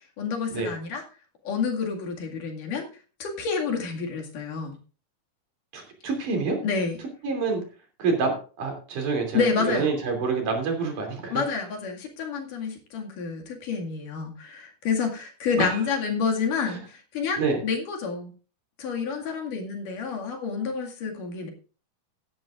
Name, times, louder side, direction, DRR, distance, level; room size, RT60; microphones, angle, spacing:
voice 1, 0.2-1.0 1.5-2.9 3.2-4.8 6.6-7.0 9.3-9.9 11.3-18.3 18.8-21.5, left 5 dB, 75° left, 1 dB, 3.8 m, -29 dB
voice 2, 5.7-6.6 7.2-7.6 8.0-11.4 15.6-15.7 17.4-17.6, right 4 dB, 70° right, 3 dB, 4.5 m, -27 dB
16.5 x 10.5 x 2.5 m, 0.36 s
omnidirectional pair, 3.7 m